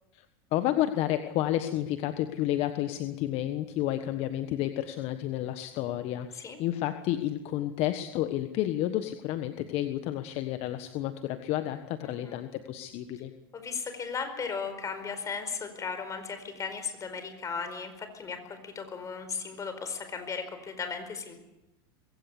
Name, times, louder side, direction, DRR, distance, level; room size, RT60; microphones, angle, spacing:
voice 1, 0.5-13.3, left 13 dB, 50° left, 9 dB, 1.4 m, -31 dB
voice 2, 12.0-12.4 13.5-21.3, left 5 dB, 25° left, 8 dB, 4.7 m, -36 dB
22.0 x 17.0 x 8.4 m, 0.96 s
supercardioid pair, 115°, 13 cm